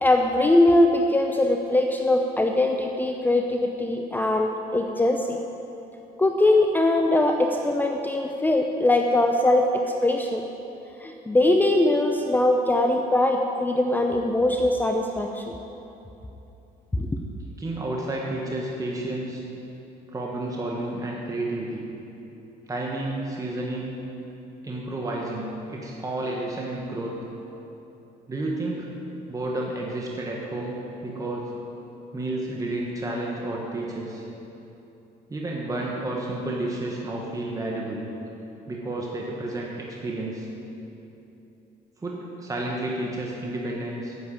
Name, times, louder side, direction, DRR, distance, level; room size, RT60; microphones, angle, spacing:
voice 1, 0.0-5.4 6.2-10.4 11.0-15.5 16.9-17.1, left 1 dB, 10° left, 3 dB, 0.6 m, -21 dB
voice 2, 17.6-19.4 20.1-21.8 22.7-23.9 24.6-27.1 28.3-28.9 29.3-31.5 32.1-34.2 35.3-38.0 38.7-40.5 42.0-44.2, right 2 dB, 20° right, -2 dB, 1.5 m, -31 dB
9.5 x 7.6 x 8.8 m, 3.0 s
cardioid pair, 110°, 17 cm